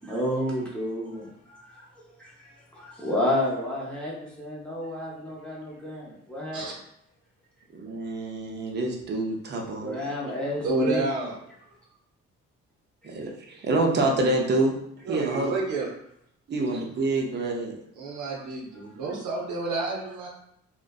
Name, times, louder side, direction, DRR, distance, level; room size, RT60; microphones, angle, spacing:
voice 1, 0.0-1.3 2.8-4.1 4.4-6.6 9.8-11.0, left 1 dB, 5° left, -6 dB, 0.6 m, -30 dB
voice 2, 7.7-10.0 13.0-14.7 15.1-15.6 16.5-17.7, right 2 dB, 35° right, 0 dB, 0.5 m, -27 dB
voice 3, 10.6-11.4 15.1-15.9 18.0-20.3, right 2 dB, 80° right, -2 dB, 0.7 m, -29 dB
2.5 x 2.1 x 2.3 m, 0.76 s
cardioid pair, 90°, 30 cm